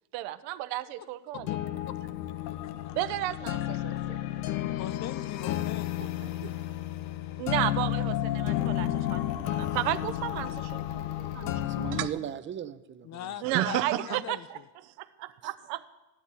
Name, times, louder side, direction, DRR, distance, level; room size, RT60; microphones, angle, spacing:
voice 1, 0.1-1.5 2.9-4.2 6.2-6.6 7.4-11.5 12.0-12.1 13.4-15.9, right 15 dB, 70° right, 0.7 m, -33 dB
sound 1, 1.3-12.1, left 13 dB, 75° left, 0.8 m, -32 dB
voice 2, 2.6-3.0 4.8-5.9 13.0-14.6, left 12 dB, 40° left, 0.4 m, -40 dB
voice 3, 11.6-13.5 15.4-15.5, right 10 dB, 30° right, 0.5 m, -38 dB
12.5 x 10.0 x 4.1 m
supercardioid pair, 90°, 44 cm